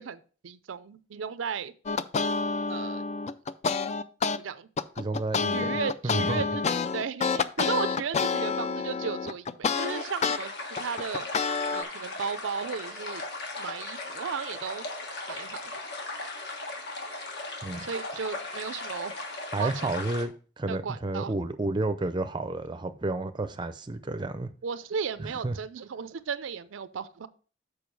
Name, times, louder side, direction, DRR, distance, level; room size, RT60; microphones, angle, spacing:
voice 1, 0.0-1.7 2.7-3.0 4.3-4.7 5.5-6.6 6.9-11.3 11.7-13.2 13.6-14.9 15.2-15.7 17.8-19.2 19.6-19.9 20.7-21.3 24.6-27.3, right 6 dB, 80° right, 0.5 m, -35 dB
sound 1, 1.9-4.4 4.8-10.4 10.8-11.8, left 5 dB, 35° left, 0.4 m, -28 dB
voice 2, 5.0-6.4 17.6-17.9 19.5-24.5 25.2-25.5, right 2 dB, 25° right, 0.5 m, -31 dB
sound 2, 9.8-20.3, left 2 dB, 60° left, 1.4 m, -38 dB
7.0 x 4.9 x 4.6 m
head